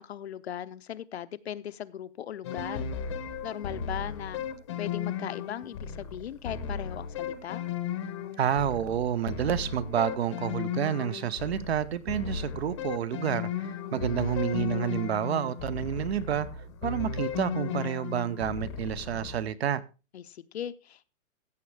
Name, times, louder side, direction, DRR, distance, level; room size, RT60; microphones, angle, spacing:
voice 1, 0.0-2.9 3.4-4.4 4.8-7.6 13.8-14.7 20.1-21.1, left 10 dB, 55° left, 0.7 m, -38 dB
sound 1, 2.4-19.5, left 7 dB, 20° left, 0.8 m, -35 dB
voice 2, 8.4-16.5 16.8-19.8, right 9 dB, 55° right, 0.9 m, -29 dB
15.0 x 7.2 x 3.3 m
hypercardioid pair, 175°, 38 cm